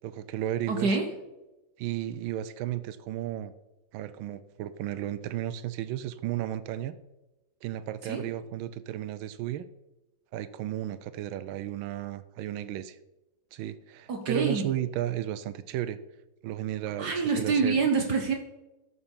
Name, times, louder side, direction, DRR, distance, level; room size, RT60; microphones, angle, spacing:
voice 1, 0.0-0.9 1.8-3.5 3.9-7.0 7.6-9.6 10.3-13.0 13.5-16.0 16.4-17.8, right 12 dB, 90° right, 14 dB, 1.4 m, -34 dB
voice 2, 0.7-1.1 8.0-8.2 14.1-14.7 17.0-18.4, right 4 dB, 60° right, 4 dB, 1.5 m, -26 dB
12.5 x 7.0 x 5.4 m, 1.0 s
omnidirectional pair, 2.1 m